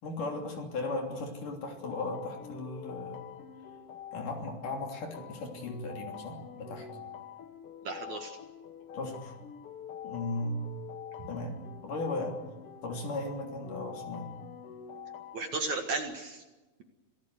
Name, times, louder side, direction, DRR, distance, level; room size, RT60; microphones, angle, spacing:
voice 1, 0.0-3.2 4.1-7.1 8.9-9.3 10.0-10.6 11.3-11.6 11.8-12.4 12.8-14.3, left 2 dB, 55° left, 2 dB, 4.5 m, -36 dB
sound 1, 1.8-15.9, left 8 dB, 75° left, 1.3 m, -46 dB
voice 2, 7.8-8.4 11.2-11.3 15.3-16.4, right 3 dB, 55° right, 4 dB, 2.6 m, -34 dB
27.0 x 18.0 x 8.0 m, 1.2 s
omnidirectional pair, 4.6 m